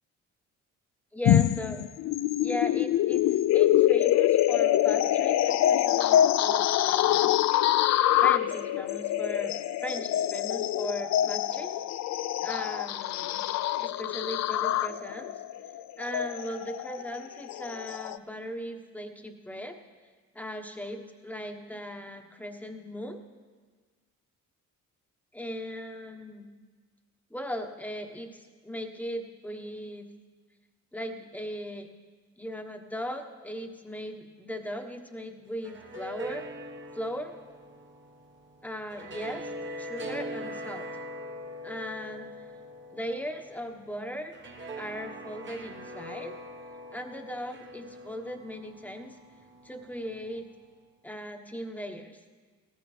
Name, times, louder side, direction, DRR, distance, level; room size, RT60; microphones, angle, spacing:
voice 1, 1.1-1.8 2.4-7.4 8.2-11.7 12.4-13.4 13.8-15.3 16.0-19.8 20.3-23.2 25.3-26.5 27.3-30.1 30.9-31.9 32.4-36.5 36.9-37.3 38.6-39.5 39.8-40.9 41.6-42.3 42.9-44.3 44.8-46.3 46.9-49.2 49.6-50.5 51.0-52.2, equal, 5° left, 4 dB, 1.3 m, -38 dB
sound 1, 1.2-18.2, left 12 dB, 65° left, 0.4 m, -25 dB
sound 2, 35.5-50.7, equal, 40° right, 1.3 m, -42 dB
17.5 x 14.5 x 3.4 m, 1.5 s
cardioid pair, 90°, 30 cm